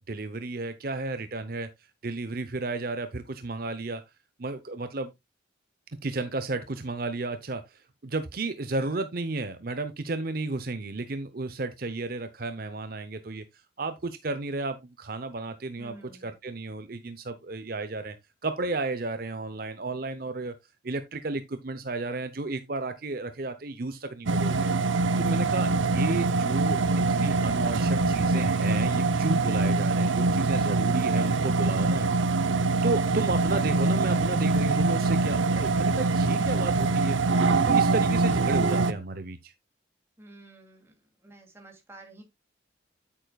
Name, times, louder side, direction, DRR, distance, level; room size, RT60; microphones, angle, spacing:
voice 1, 0.0-1.7 2.0-4.0 4.4-5.1 6.0-13.4 13.8-15.9 16.2-18.1 18.4-20.5 20.8-24.7 25.2-26.8 27.1-32.3 32.8-37.2 37.6-39.5, right 3 dB, 50° right, 0.8 m, -33 dB
voice 2, 15.8-16.4 40.2-40.9 41.2-42.2, right 1 dB, 15° right, 2.6 m, -50 dB
sound 1, 24.3-38.9, right 3 dB, 85° right, 0.8 m, -24 dB
9.2 x 8.8 x 2.3 m
head